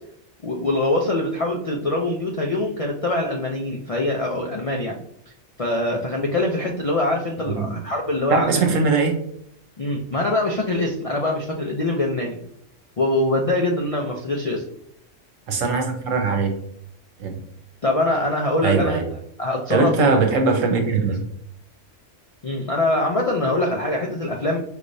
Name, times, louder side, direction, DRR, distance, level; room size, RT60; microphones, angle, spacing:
voice 1, 0.4-5.0 5.6-8.6 9.8-12.4 13.0-14.7 17.8-19.0 19.4-20.1 22.4-24.6, left 2 dB, 60° left, 0 dB, 0.3 m, -23 dB
voice 2, 7.4-7.8 8.3-9.2 15.5-16.5 17.2-17.4 18.6-19.1 19.7-21.2, right 4 dB, 85° right, 4 dB, 1.2 m, -21 dB
5.0 x 3.2 x 2.6 m, 0.67 s
omnidirectional pair, 1.3 m